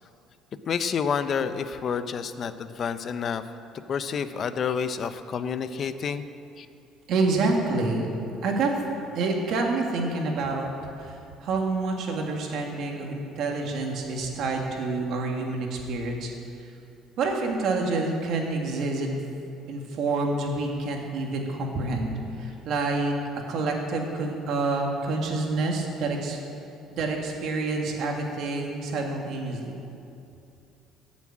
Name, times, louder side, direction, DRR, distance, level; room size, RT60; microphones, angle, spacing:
voice 1, 0.7-3.4 3.9-6.3 6.6-6.7, left 6 dB, 35° left, 11 dB, 0.6 m, -29 dB
voice 2, 7.1-8.1 8.4-8.7 9.1-10.7 11.0-16.3 17.2-19.2 19.7-22.1 22.4-23.2 23.5-26.4 26.9-29.8, right 3 dB, 50° right, 1 dB, 2.1 m, -27 dB
14.5 x 7.3 x 8.8 m, 2.7 s
cardioid pair, 160°, 0 cm